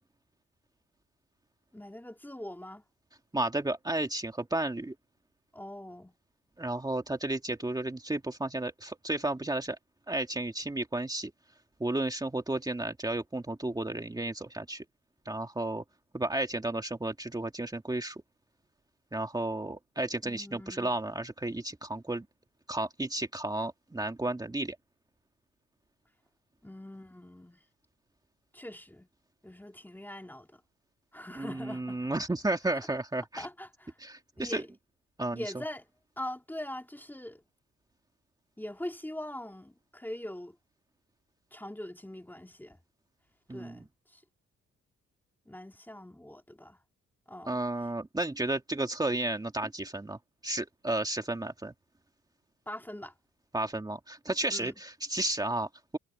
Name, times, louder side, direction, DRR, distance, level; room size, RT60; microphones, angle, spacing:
voice 1, 1.7-2.8 5.5-6.2 20.2-20.9 26.6-27.6 28.5-29.1 29.4-30.6 31.1-32.1 33.4-34.0 34.4-34.7 35.3-35.9 36.2-37.4 38.6-40.6 41.5-42.8 43.5-44.2 45.5-46.8 47.3-47.6 52.7-53.1 54.5-54.7, left 1 dB, 5° left, 2.9 m, -42 dB
voice 2, 3.3-4.9 6.6-9.8 10.1-11.3 11.8-14.8 15.3-15.8 16.1-18.2 19.1-22.2 22.7-24.8 31.4-33.5 34.0-34.6 35.2-35.4 43.5-43.8 47.5-51.7 53.5-56.0, right 2 dB, 15° right, 2.4 m, -33 dB
cardioid pair, 90°, 30 cm